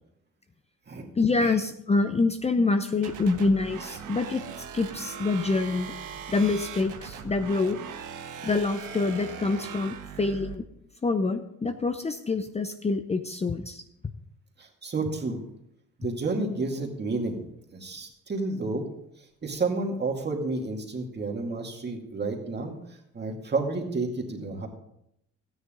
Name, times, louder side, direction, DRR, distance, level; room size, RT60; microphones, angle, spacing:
voice 1, 1.2-4.4 4.7-5.9 6.3-7.8 8.4-10.6 11.0-13.8, left 3 dB, 20° left, 7 dB, 0.7 m, -26 dB
sound 1, 3.0-10.6, right 7 dB, 85° right, 1.2 m, -40 dB
voice 2, 14.6-15.4 16.0-17.4 17.7-18.9 19.2-22.7 23.1-24.7, right 3 dB, 35° right, 1 dB, 2.3 m, -30 dB
13.5 x 9.7 x 3.8 m, 0.77 s
cardioid pair, 90°, 30 cm